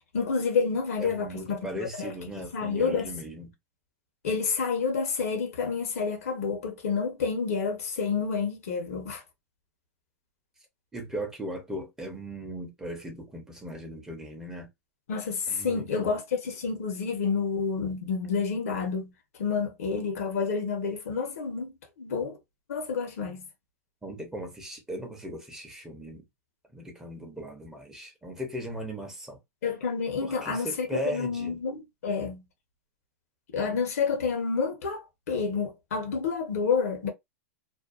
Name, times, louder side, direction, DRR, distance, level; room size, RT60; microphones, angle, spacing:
voice 1, 0.1-3.1 4.2-9.2 15.1-19.1 19.4-22.4 22.7-23.5 29.6-32.4 33.5-37.1, left 5 dB, 80° left, 1.0 m, -29 dB
voice 2, 1.0-3.5 10.9-14.7 15.5-16.2 24.0-26.3 26.7-29.4 30.2-31.6, right 1 dB, 5° right, 0.7 m, -38 dB
2.6 x 2.2 x 2.4 m
hypercardioid pair, 125°, 8 cm